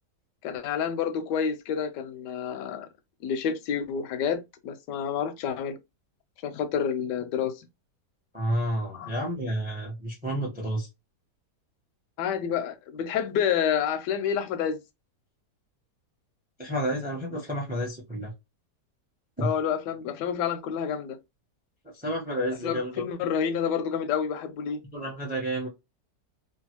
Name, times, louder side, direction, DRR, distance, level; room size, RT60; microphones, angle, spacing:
voice 1, 0.4-2.9 3.2-5.8 6.4-7.7 8.9-9.2 12.2-14.8 19.4-21.2 22.6-24.8, left 8 dB, 85° left, 1.2 m, -29 dB
voice 2, 8.3-10.9 16.6-18.3 19.4-19.5 22.0-22.9 24.9-25.7, equal, 10° right, 0.5 m, -30 dB
3.1 x 2.2 x 2.8 m
omnidirectional pair, 1.8 m